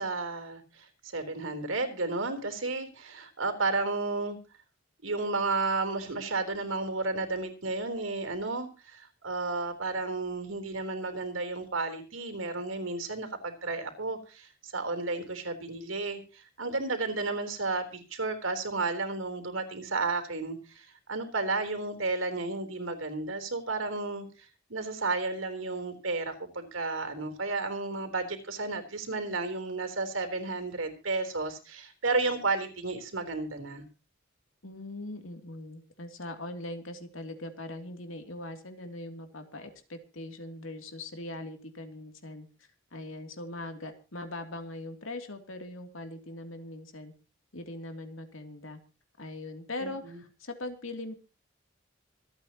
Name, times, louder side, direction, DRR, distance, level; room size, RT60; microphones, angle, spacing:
voice 1, 0.0-4.4 5.0-33.8 49.8-50.2, right 3 dB, 75° right, 7 dB, 3.9 m, -32 dB
voice 2, 34.6-47.1 47.5-48.8 49.2-51.1, left 2 dB, 70° left, 5 dB, 2.9 m, -41 dB
25.5 x 9.3 x 3.0 m, 0.34 s
head